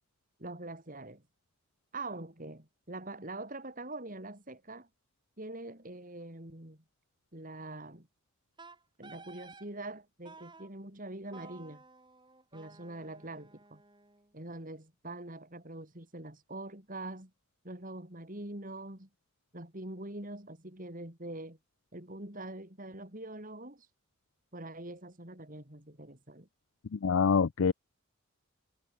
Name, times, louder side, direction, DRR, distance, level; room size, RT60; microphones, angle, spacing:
voice 1, 0.4-1.2 1.9-4.9 5.4-6.8 7.3-8.1 9.0-11.8 12.5-13.8 14.3-17.3 17.6-19.1 19.5-21.6 21.9-23.9 24.5-26.5, right 2 dB, 40° right, 4.1 m, -44 dB
Wind instrument woodwind instrument, 8.6-9.7 10.2-10.7 11.3-14.3, right 3 dB, 20° right, 4.7 m, -54 dB
voice 2, 26.9-27.7, left 5 dB, 70° left, 0.5 m, -26 dB
head